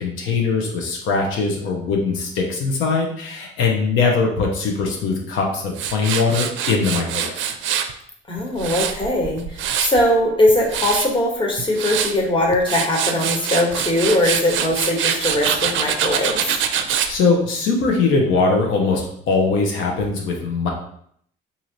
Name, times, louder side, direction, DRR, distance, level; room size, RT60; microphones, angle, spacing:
voice 1, 0.0-7.5 17.1-20.7, left 4 dB, 90° left, 0 dB, 0.8 m, -21 dB
Tools, 5.7-7.9 8.4-10.0 10.5-11.1 11.6-12.1 12.5-17.1, right 9 dB, 75° right, 0.4 m, -24 dB
voice 2, 8.3-16.6, left 1 dB, 25° left, -1 dB, 1.1 m, -20 dB
3.1 x 2.7 x 3.9 m, 0.66 s
cardioid pair, 90°, 20 cm